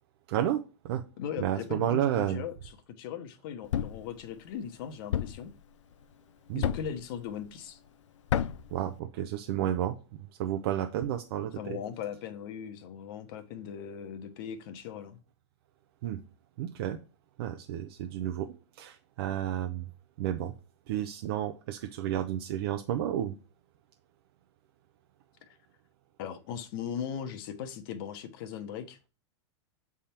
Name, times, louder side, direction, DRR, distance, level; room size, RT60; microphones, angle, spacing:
voice 1, 0.3-1.0 1.4-2.4 6.5-6.7 8.7-9.9 10.4-11.8 16.0-16.2 16.6-17.0 17.4-19.8 20.2-20.5 20.9-23.3, right 11 dB, 55° right, 0.6 m, -31 dB
voice 2, 1.2-5.5 6.5-7.8 11.5-15.2 25.5-25.6 26.2-29.1, left 8 dB, 50° left, 1.0 m, -39 dB
Thump thud, 3.7-4.1 5.1-5.5 6.6-7.0 8.3-8.7, left 10 dB, 90° left, 0.4 m, -29 dB
7.4 x 3.6 x 4.3 m
supercardioid pair, 145°, 15 cm